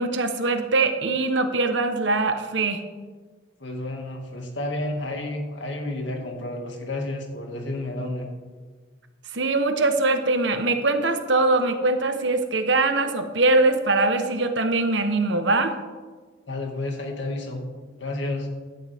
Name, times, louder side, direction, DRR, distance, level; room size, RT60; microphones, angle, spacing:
voice 1, 0.0-2.8 9.3-15.8, right 2 dB, 70° right, 7 dB, 1.2 m, -22 dB
voice 2, 3.6-8.3 16.5-17.7 18.0-18.5, left 2 dB, 75° left, 2 dB, 2.2 m, -31 dB
16.5 x 11.5 x 3.6 m, 1.4 s
head